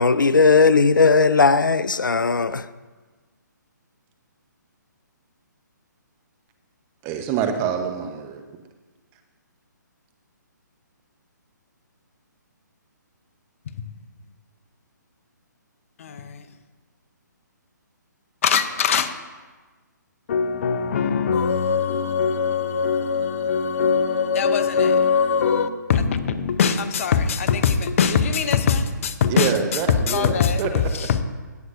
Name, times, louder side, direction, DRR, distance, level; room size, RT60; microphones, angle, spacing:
voice 1, 0.0-2.7, left 4 dB, 90° left, 0.4 m, -17 dB
voice 2, 7.0-8.4 29.3-30.7, right 8 dB, 25° right, 0.9 m, -26 dB
voice 3, 16.0-16.4 18.4-19.2 20.3-29.5 29.9-31.2, left 6 dB, 45° left, 0.7 m, -21 dB
17.5 x 7.8 x 2.6 m
figure-of-eight pair, 140°, 10 cm